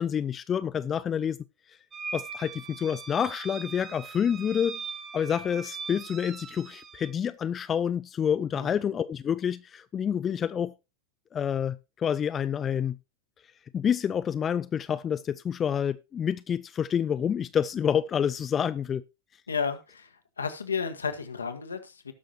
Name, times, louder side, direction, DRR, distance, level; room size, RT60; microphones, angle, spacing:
voice 1, 0.0-1.4 2.1-4.8 5.1-10.7 11.3-13.0 13.7-19.0, left 8 dB, 25° left, 0.4 m, -28 dB
sound 1, 1.9-7.1, right 5 dB, 25° right, 1.4 m, -40 dB
voice 2, 19.5-20.1 20.4-22.1, left 5 dB, 75° left, 1.4 m, -32 dB
19.0 x 6.3 x 2.8 m
figure-of-eight pair, 90°, 0 cm